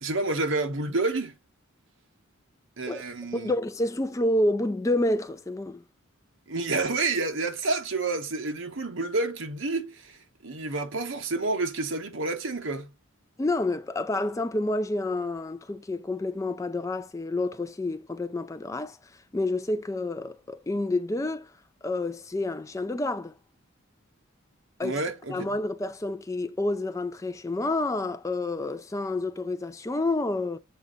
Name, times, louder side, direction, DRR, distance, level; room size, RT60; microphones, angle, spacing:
voice 1, 0.0-1.3 2.8-3.6 6.5-12.9 24.8-25.5, right 3 dB, 65° right, 1.2 m, -29 dB
voice 2, 3.3-5.8 13.4-19.0 19.3-21.5 21.8-23.3 24.8-25.0 25.3-30.6, left 2 dB, 15° left, 0.3 m, -29 dB
7.3 x 4.1 x 3.7 m
head